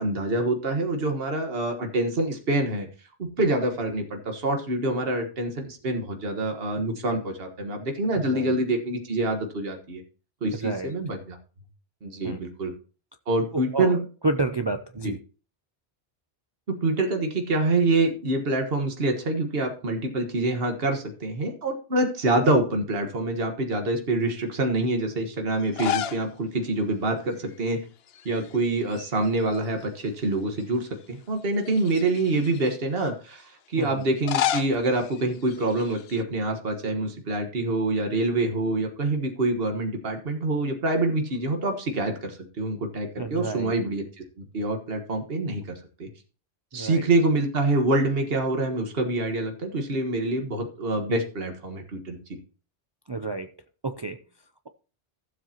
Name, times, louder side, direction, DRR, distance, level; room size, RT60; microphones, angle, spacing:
voice 1, 0.0-2.9 3.2-10.0 10.4-11.4 12.0-12.7 13.3-14.0 15.0-15.1 16.7-27.8 28.2-44.0 44.4-46.1 46.7-52.4, right 2 dB, 65° right, 4 dB, 1.7 m, -26 dB
voice 2, 8.1-8.5 10.5-10.9 12.2-12.4 13.5-14.0 14.2-15.2 33.8-34.1 43.2-43.7 46.7-47.0 53.1-53.5 53.8-54.2, right 2 dB, 35° right, 8 dB, 0.5 m, -30 dB
sound 1, 25.6-26.3 26.6-26.7 28.1-28.6 28.9-30.0 30.6-30.7 31.6-32.7 34.0-36.2, left 10 dB, 70° left, 0.9 m, -31 dB
15.5 x 7.6 x 2.9 m, 0.36 s
omnidirectional pair, 1.1 m